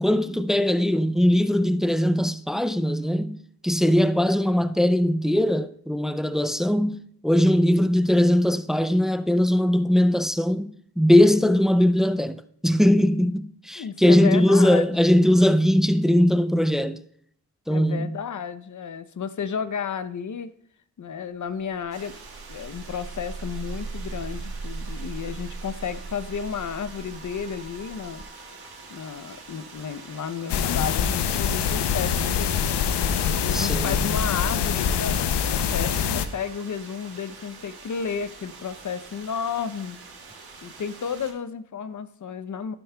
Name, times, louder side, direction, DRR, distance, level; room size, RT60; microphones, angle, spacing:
voice 1, 0.0-3.4 3.6-17.0 17.7-18.1 33.5-34.0, left 1 dB, ahead, 0.3 m, -20 dB
voice 2, 13.8-14.9 17.7-20.5 21.0-22.1 22.5-28.2 28.9-32.9 33.4-40.0 40.6-42.7, left 7 dB, 45° left, 0.6 m, -32 dB
sound 1, 21.8-31.6, right 3 dB, 25° right, 1.0 m, -39 dB
sound 2, 21.9-41.3, right 4 dB, 65° right, 1.7 m, -46 dB
sound 3, 30.5-36.3, left 7 dB, 85° left, 0.6 m, -24 dB
11.5 x 11.0 x 2.2 m
cardioid pair, 60°, 40 cm